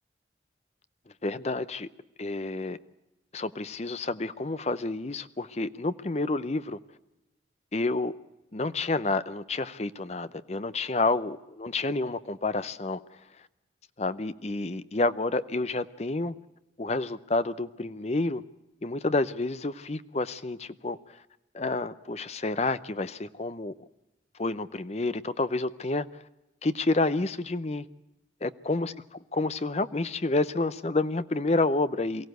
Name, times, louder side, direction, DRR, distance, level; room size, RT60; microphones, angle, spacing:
voice 1, 1.2-1.9 2.2-2.8 3.3-6.8 7.7-8.1 8.5-13.2 14.0-16.3 16.8-18.4 18.8-21.2 21.5-23.7 24.4-26.2 26.6-27.9 28.4-28.9 29.3-32.3, left 2 dB, 35° left, 0.6 m, -29 dB
23.0 x 15.5 x 7.9 m
head